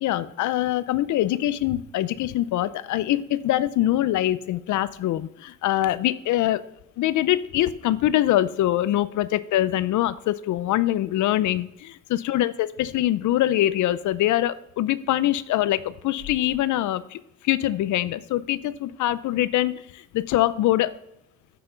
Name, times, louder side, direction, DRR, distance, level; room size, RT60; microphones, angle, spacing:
voice 1, 0.0-6.6 7.0-20.9, left 13 dB, 75° left, 15 dB, 0.5 m, -24 dB
7.7 x 5.8 x 3.9 m, 0.81 s
cardioid pair, 90°, 30 cm